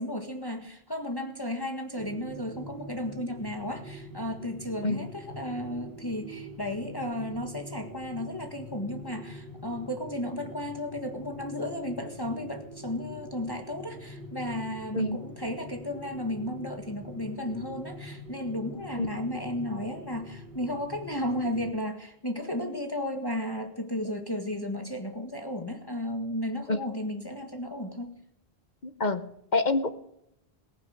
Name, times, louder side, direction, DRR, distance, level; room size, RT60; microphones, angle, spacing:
voice 1, 0.0-28.1, left 1 dB, 20° left, 4 dB, 1.8 m, -34 dB
sound 1, 2.0-21.7, equal, 70° right, 4.5 m, -44 dB
voice 2, 28.8-29.3 29.5-29.9, left 3 dB, 45° left, 10 dB, 1.1 m, -26 dB
18.5 x 11.0 x 6.5 m, 0.78 s
omnidirectional pair, 1.0 m